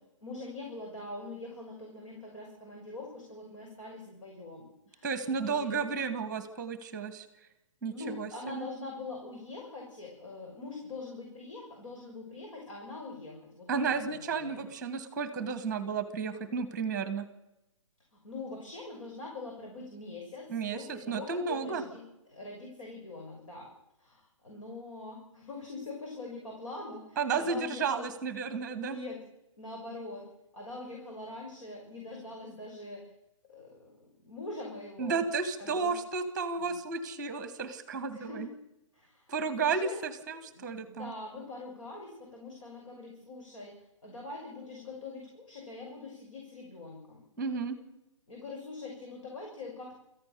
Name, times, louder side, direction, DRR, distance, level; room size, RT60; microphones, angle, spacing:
voice 1, 0.2-5.8 7.9-14.6 18.1-22.0 22.3-23.7 24.0-28.1 28.7-29.2 29.6-30.3 30.5-33.0 33.5-35.2 35.6-36.0 36.6-36.7 38.1-38.4 38.9-40.0 40.5-43.7 44.0-47.2 48.3-49.9, left 2 dB, 75° left, 1 dB, 6.3 m, -43 dB
voice 2, 5.0-7.3 7.8-8.7 13.7-17.2 20.5-21.8 27.2-29.0 35.0-38.5 39.3-41.1 47.4-47.8, right 5 dB, 5° right, 11 dB, 1.5 m, -33 dB
27.0 x 14.5 x 6.8 m, 0.90 s
hypercardioid pair, 170°, 16 cm